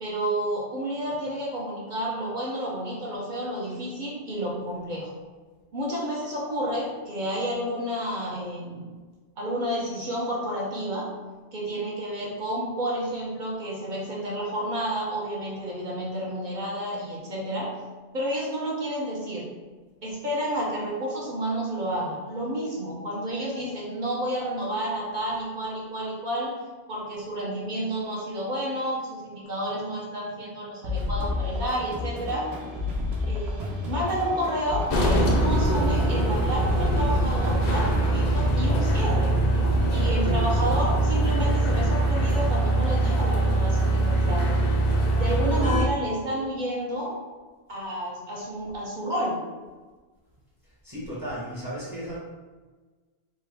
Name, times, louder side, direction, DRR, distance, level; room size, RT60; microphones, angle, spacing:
voice 1, 0.0-5.1 5.7-8.9 9.4-11.1 11.5-17.7 18.1-19.5 20.0-26.6 26.9-32.5 33.3-39.3 39.9-44.6 45.1-47.2 47.7-49.4, right 1 dB, 50° right, -5 dB, 0.9 m, -30 dB
sound 1, 30.8-38.2, left 3 dB, 80° right, 0.9 m, -31 dB
sound 2, 34.9-45.8, right 1 dB, 55° left, 0.5 m, -23 dB
voice 2, 50.6-52.2, equal, 20° right, -9 dB, 0.8 m, -35 dB
3.7 x 2.2 x 3.2 m, 1.3 s
omnidirectional pair, 1.1 m